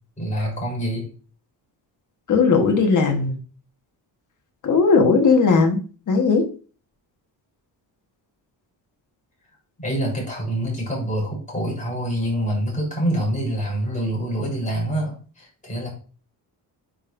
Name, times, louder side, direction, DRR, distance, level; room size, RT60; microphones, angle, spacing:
voice 1, 0.2-1.1 9.8-15.9, right 1 dB, 20° left, -3 dB, 3.9 m, -26 dB
voice 2, 2.3-3.3 4.6-5.8 6.1-6.5, left 4 dB, 45° left, 4 dB, 1.4 m, -17 dB
9.2 x 5.2 x 2.6 m, 0.38 s
cardioid pair, 160°, 42 cm